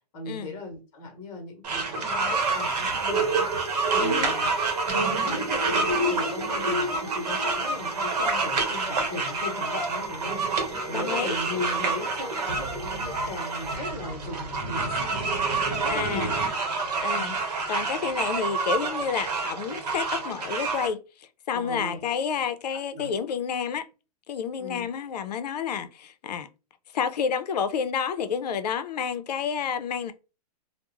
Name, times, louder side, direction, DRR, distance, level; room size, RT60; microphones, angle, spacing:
voice 1, 0.1-3.5 3.9-4.5 4.9-10.4 10.9-15.3 15.7-16.4 17.1-17.3 21.5-22.0 22.9-23.1 24.6-24.9, left 2 dB, 25° left, 0.8 m, -37 dB
sound 1, 1.6-20.9, right 4 dB, 80° right, 0.8 m, -28 dB
sound 2, 1.7-9.1 9.4-9.5 9.8-9.9 10.2-16.5, right 2 dB, 45° right, 1.0 m, -34 dB
sound 3, 2.3-13.8, left 3 dB, 20° right, 0.4 m, -48 dB
voice 2, 4.0-4.3 10.9-11.4 15.9-16.3 17.0-17.3 17.7-23.9 24.3-26.5 26.9-30.1, left 7 dB, 90° left, 0.5 m, -30 dB
2.3 x 2.0 x 2.9 m
hypercardioid pair, 170°, 20 cm